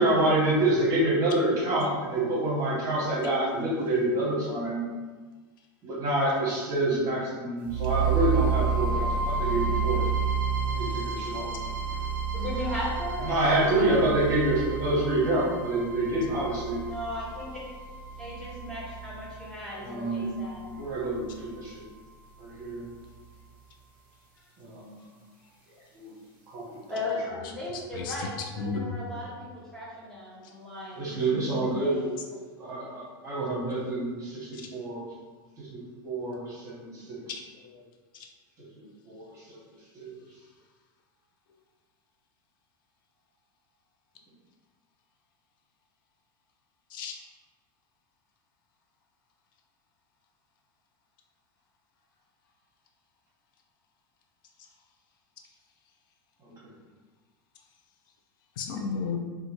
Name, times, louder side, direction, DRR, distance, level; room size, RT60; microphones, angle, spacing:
voice 1, 0.0-4.8 5.8-10.0 10.7-11.5 13.2-16.8 19.8-20.4 20.8-21.8 22.4-22.8 24.6-25.0 25.9-26.1 26.5-26.8 30.9-31.9 32.6-35.0 35.6-37.2 38.8-39.6 39.9-40.1 56.4-56.5, right 1 dB, 30° right, -7 dB, 1.1 m, -27 dB
sound 1, 7.6-21.6, right 5 dB, 50° right, 0.7 m, -31 dB
voice 2, 12.3-13.8 16.7-17.6 18.2-20.6 26.9-28.3 28.5-29.5 29.7-31.2 31.6-32.0, left 1 dB, 5° left, -8 dB, 0.8 m, -36 dB
voice 3, 27.3-29.0 32.4-32.5 34.5-34.7 37.3-37.9 38.1-38.3 46.9-47.1 58.6-59.2, left 5 dB, 75° left, 2 dB, 0.4 m, -35 dB
2.6 x 2.3 x 2.9 m, 1.4 s
supercardioid pair, 150°, 11 cm